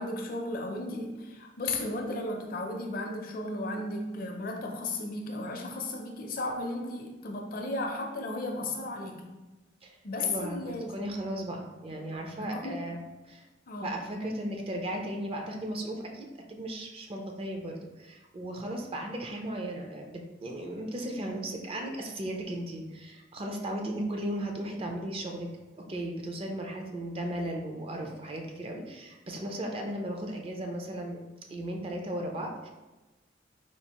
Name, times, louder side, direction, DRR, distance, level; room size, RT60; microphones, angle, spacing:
voice 1, 0.0-9.3 10.0-11.0 12.4-12.9 13.7-14.0, left 2 dB, 50° left, 2 dB, 0.5 m, -35 dB
voice 2, 9.8-13.5 13.8-25.5 25.8-31.2 31.5-32.7, right 1 dB, 30° right, 2 dB, 0.4 m, -36 dB
4.4 x 2.4 x 2.9 m, 1.1 s
head